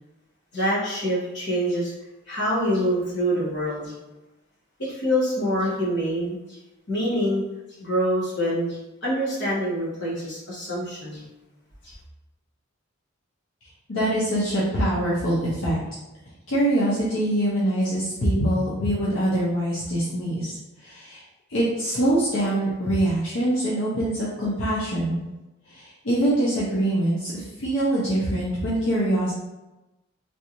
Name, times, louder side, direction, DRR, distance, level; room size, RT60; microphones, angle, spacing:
voice 1, 0.5-1.9 2.3-3.9 4.8-6.4 6.9-7.4 7.8-11.2, equal, 60° left, -8 dB, 1.4 m, -25 dB
voice 2, 13.9-15.8 16.5-21.2 21.5-25.2 25.7-29.3, right 1 dB, 80° left, -7 dB, 0.7 m, -24 dB
3.4 x 2.6 x 2.9 m, 1.0 s
head